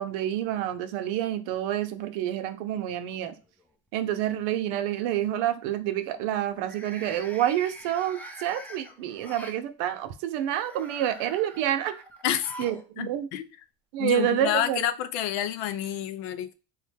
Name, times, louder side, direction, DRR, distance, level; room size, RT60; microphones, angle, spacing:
voice 1, 0.0-3.3 3.9-12.0 12.6-13.3 13.9-14.9, right 12 dB, 80° right, 0.7 m, -28 dB
sound 1, 3.0-3.6 4.0-4.4 6.5-9.6 10.4-12.9 13.1-13.2 14.4-14.5, equal, 5° left, 0.5 m, -45 dB
voice 2, 12.2-12.5 13.0-13.5 14.0-16.5, left 11 dB, 85° left, 0.6 m, -29 dB
3.4 x 2.1 x 3.3 m
supercardioid pair, 90°, 46 cm